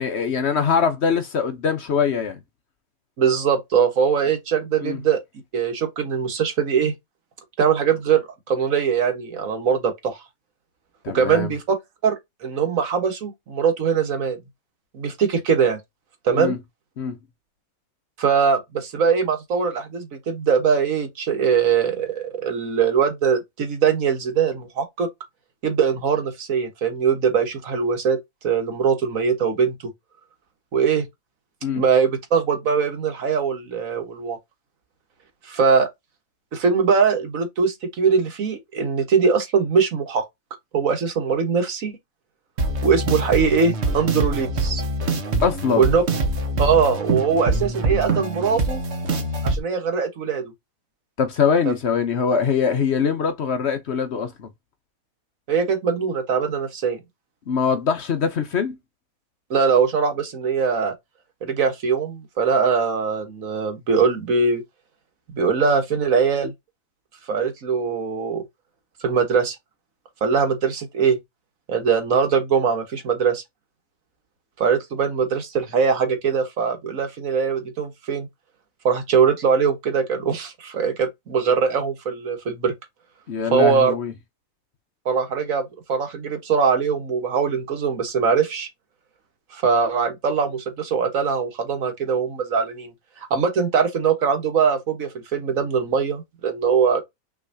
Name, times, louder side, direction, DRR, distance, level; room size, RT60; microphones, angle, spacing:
voice 1, 0.0-2.4 4.8-5.0 11.0-11.5 16.4-16.6 17.0-17.2 31.6-31.8 45.4-45.8 51.2-54.5 57.5-58.8 83.3-84.1, left 6 dB, 55° left, 0.9 m, -22 dB
voice 2, 3.2-5.2 5.5-6.9 7.6-8.2 8.5-10.2 11.1-11.8 12.0-14.4 14.9-15.8 16.2-16.5 18.2-25.1 25.6-28.2 28.4-29.9 30.7-31.1 31.8-34.4 35.5-35.9 36.5-40.2 40.7-41.9 42.8-44.8 45.7-46.0 46.6-48.8 49.4-50.5 51.6-51.7 55.5-57.0 59.5-60.9 61.4-64.6 65.3-66.5 67.3-68.4 69.0-69.6 70.2-71.2 71.7-73.4 74.6-78.3 78.8-82.7 83.5-83.9 85.0-88.7 89.5-92.9 93.3-97.0, right 6 dB, 65° right, 1.6 m, -21 dB
sound 1, 42.6-49.6, right 2 dB, 50° right, 1.3 m, -24 dB
6.1 x 3.1 x 2.6 m
omnidirectional pair, 1.5 m